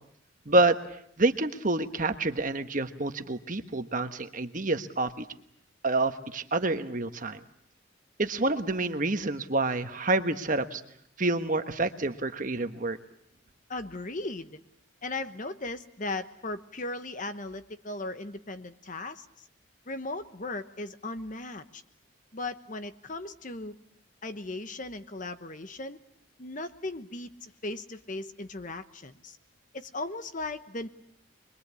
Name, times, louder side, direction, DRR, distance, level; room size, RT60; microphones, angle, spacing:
voice 1, 0.5-0.8 1.2-5.2 5.8-7.4 8.2-10.8 11.2-13.0, right 2 dB, 40° right, 8 dB, 1.3 m, -27 dB
voice 2, 13.7-14.6 15.0-19.3 19.9-21.8 22.3-23.8 24.2-26.0 26.4-29.4 29.7-30.9, left 2 dB, 40° left, 10 dB, 1.1 m, -37 dB
25.5 x 22.0 x 8.4 m, 0.70 s
head